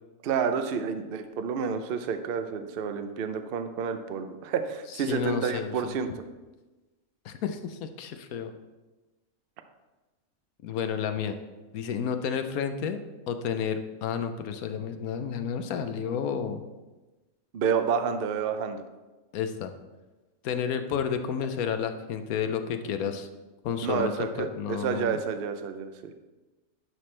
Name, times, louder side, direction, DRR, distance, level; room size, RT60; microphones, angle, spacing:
voice 1, 0.2-6.2 17.5-18.8 23.8-26.1, right 6 dB, 55° right, 8 dB, 0.7 m, -29 dB
voice 2, 4.9-5.9 7.2-8.5 10.6-11.4 11.7-13.0 13.3-16.6 19.3-19.7 20.4-23.3 23.6-25.2, left 7 dB, 90° left, 8 dB, 1.2 m, -31 dB
11.0 x 6.0 x 3.3 m, 1.2 s
omnidirectional pair, 1.5 m